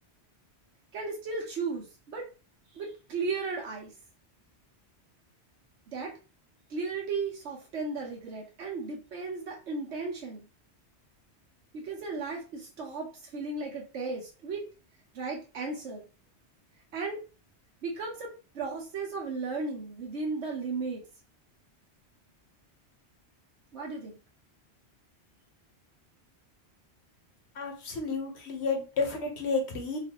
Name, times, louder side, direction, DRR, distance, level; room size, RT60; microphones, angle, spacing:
voice 1, 0.9-2.3 2.7-3.9 5.9-6.1 6.7-10.5 11.7-14.6 15.1-16.0 16.9-17.2 17.8-21.0 23.7-24.2, right 4 dB, 90° right, -1 dB, 1.2 m, -35 dB
voice 2, 27.5-30.0, left 4 dB, 75° left, 2 dB, 1.2 m, -31 dB
3.8 x 2.5 x 2.9 m, 0.33 s
omnidirectional pair, 1.1 m